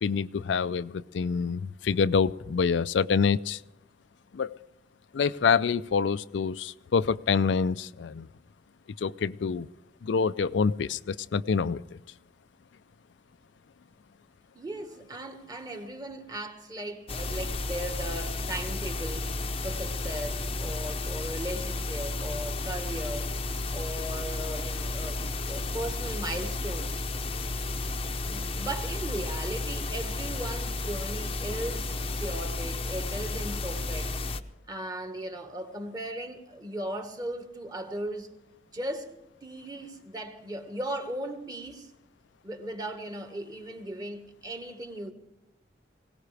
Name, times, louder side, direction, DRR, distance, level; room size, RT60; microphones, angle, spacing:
voice 1, 0.0-3.6 4.3-4.5 5.1-8.3 9.0-9.7 10.0-12.0, left 5 dB, 70° left, 0.4 m, -26 dB
voice 2, 14.5-19.3 19.6-23.3 23.7-27.0 28.3-34.2 34.7-38.3 38.7-39.1 39.4-41.9 42.4-45.1, right 1 dB, 20° right, 1.5 m, -37 dB
sound 1, 17.1-34.4, left 2 dB, 30° left, 0.7 m, -32 dB
21.5 x 18.0 x 3.4 m
head